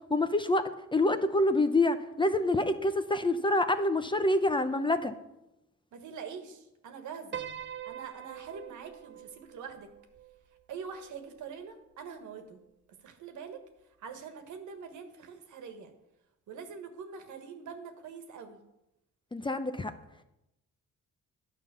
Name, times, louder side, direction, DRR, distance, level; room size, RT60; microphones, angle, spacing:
voice 1, 0.1-5.1 19.3-19.9, left 2 dB, 15° left, 10 dB, 0.6 m, -27 dB
voice 2, 5.9-7.4 7.9-9.9 10.7-12.6 13.0-13.6 14.0-15.9 16.5-18.6, right 6 dB, 75° right, 6 dB, 1.5 m, -44 dB
Piano, 7.3-11.7, right 9 dB, 40° right, 0.7 m, -44 dB
9.8 x 5.5 x 6.8 m, 0.90 s
cardioid pair, 90°, 30 cm